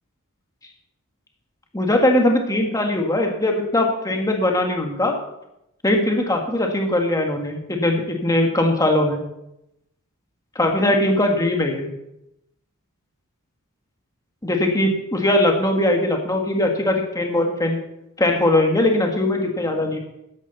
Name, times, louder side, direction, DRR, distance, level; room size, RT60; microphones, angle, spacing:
voice 1, 1.7-5.1 5.8-9.2 10.6-11.9 14.4-17.8 18.2-20.0, left 1 dB, 15° left, 2 dB, 1.8 m, -20 dB
14.0 x 11.5 x 4.2 m, 0.84 s
head